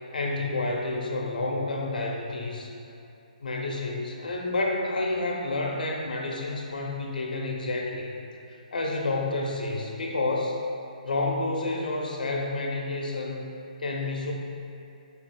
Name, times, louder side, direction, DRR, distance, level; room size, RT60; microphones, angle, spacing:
voice 1, 0.1-2.7 3.4-8.2 8.7-10.6 11.0-13.4 13.8-14.3, left 2 dB, 80° left, -1 dB, 0.6 m, -29 dB
4.0 x 2.4 x 3.7 m, 2.7 s
hypercardioid pair, 170°, 5 cm